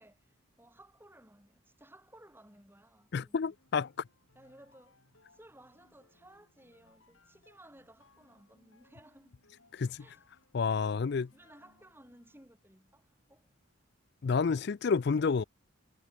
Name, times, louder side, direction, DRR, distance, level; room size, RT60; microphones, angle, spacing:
voice 1, 0.0-3.6 4.3-5.0 5.3-9.4 10.0-10.3 11.3-13.5, right 1 dB, 10° right, 6.0 m, -58 dB
voice 2, 3.1-3.9 9.7-10.0 10.5-11.3 14.2-15.4, left 5 dB, 50° left, 0.4 m, -29 dB
sound 1, 3.4-12.6, left 2 dB, 75° left, 7.3 m, -67 dB
head